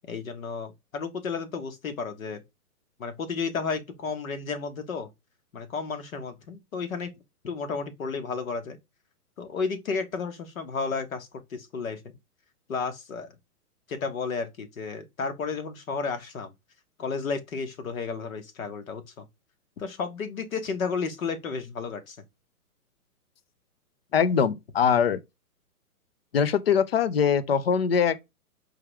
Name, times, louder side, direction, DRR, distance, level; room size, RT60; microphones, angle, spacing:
voice 1, 0.0-2.4 3.0-5.1 5.5-7.1 7.4-8.8 9.4-12.2 12.7-13.4 13.9-16.5 17.0-19.3 19.8-22.2, left 5 dB, 65° left, 1.3 m, -32 dB
voice 2, 24.1-25.2 26.3-28.2, left 7 dB, 45° left, 0.5 m, -22 dB
4.8 x 3.0 x 3.3 m
hypercardioid pair, 170°, 45 cm